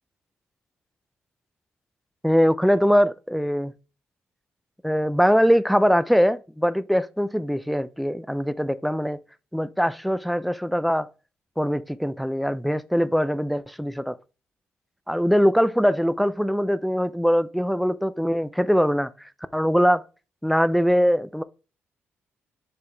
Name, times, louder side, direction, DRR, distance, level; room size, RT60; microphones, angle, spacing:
voice 1, 2.2-3.7 4.8-9.2 9.5-11.1 11.6-14.1 15.1-20.0 20.4-21.4, equal, ahead, 0.5 m, -22 dB
6.7 x 4.8 x 3.4 m
cardioid pair, 65°, 5 cm